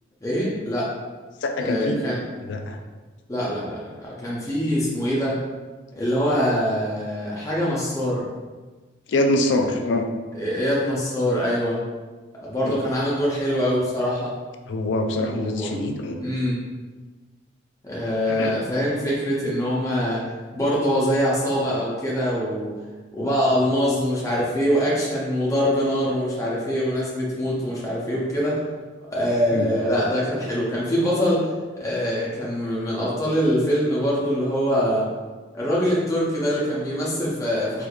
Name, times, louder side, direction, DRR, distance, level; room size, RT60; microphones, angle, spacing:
voice 1, 0.2-0.9 1.6-2.2 3.3-5.4 6.0-8.2 10.4-11.8 12.4-14.3 15.2-15.7 16.2-16.6 17.8-20.2 20.5-22.7 23.1-28.6 29.1-31.5 31.8-35.1 35.5-37.9, equal, 15° left, -7 dB, 0.6 m, -23 dB
voice 2, 1.4-2.1 2.4-2.8 9.1-10.1 12.6-12.8 14.7-16.2 18.3-18.6 29.5-29.7, left 2 dB, 75° left, 5 dB, 0.4 m, -24 dB
4.3 x 2.4 x 2.4 m, 1.3 s
head